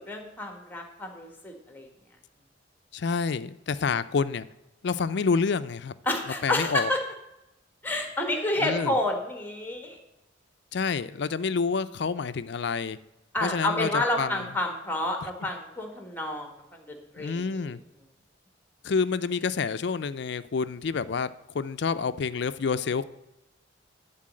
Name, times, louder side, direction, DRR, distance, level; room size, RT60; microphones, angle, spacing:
voice 1, 0.1-1.9 6.1-7.0 7.8-10.0 13.3-17.7, left 1 dB, 10° left, 4 dB, 1.4 m, -30 dB
voice 2, 2.9-4.5 4.8-5.9 6.4-6.9 8.6-9.0 10.7-13.0 13.4-14.5 17.2-17.8 18.8-23.0, left 5 dB, 60° left, 14 dB, 0.4 m, -28 dB
11.5 x 4.0 x 7.6 m, 0.93 s
head